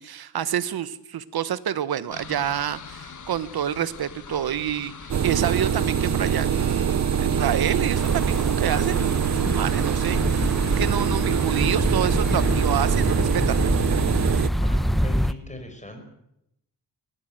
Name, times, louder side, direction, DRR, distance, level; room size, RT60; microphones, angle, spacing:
voice 1, 0.0-4.9 5.2-13.6, right 10 dB, 65° right, 15 dB, 1.2 m, -28 dB
sound 1, 2.1-13.0, left 7 dB, 45° left, 1.7 m, -40 dB
sound 2, 5.1-14.5, right 8 dB, 45° right, 0.8 m, -24 dB
sound 3, 8.0-15.3, equal, ahead, 0.8 m, -26 dB
voice 2, 14.6-16.0, left 1 dB, 20° left, 6 dB, 5.2 m, -40 dB
19.5 x 14.5 x 9.3 m, 0.81 s
cardioid pair, 105°, 40 cm